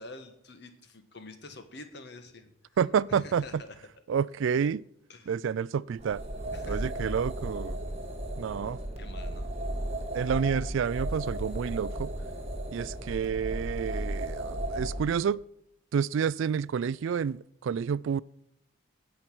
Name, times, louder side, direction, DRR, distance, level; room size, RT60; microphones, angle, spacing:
voice 1, 0.0-2.5 3.1-3.8 5.1-5.4 6.5-6.9 9.0-9.5, left 2 dB, 55° left, 1.3 m, -46 dB
voice 2, 2.8-3.4 4.1-4.8 5.3-6.2 6.7-7.8 8.4-8.8 10.1-12.1 12.7-15.4 15.9-18.2, right 7 dB, 70° right, 0.3 m, -29 dB
sound 1, 5.9-15.1, right 1 dB, 30° right, 1.5 m, -35 dB
17.0 x 5.7 x 6.1 m
head